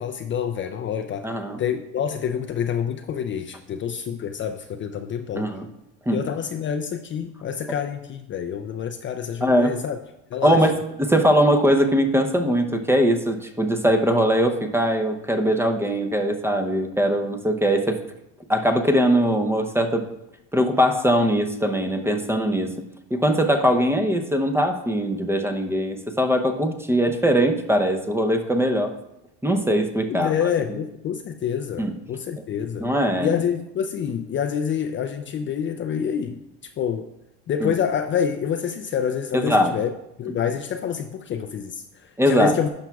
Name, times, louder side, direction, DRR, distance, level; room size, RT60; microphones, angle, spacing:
voice 1, 0.0-1.3 1.6-5.5 6.1-10.0 10.3-10.7 30.1-32.9 33.2-37.1 37.5-42.7, left 8 dB, 35° left, 6 dB, 0.5 m, -27 dB
voice 2, 1.2-1.6 5.3-5.7 6.1-6.2 9.4-9.8 10.4-18.0 18.5-20.1 20.5-22.7 23.1-28.9 29.4-30.3 31.8-31.9 32.8-33.4 37.6-37.7 39.3-39.7 42.2-42.6, equal, 5° right, 6 dB, 0.7 m, -21 dB
11.5 x 5.9 x 2.3 m, 0.87 s
supercardioid pair, 100°, 35 cm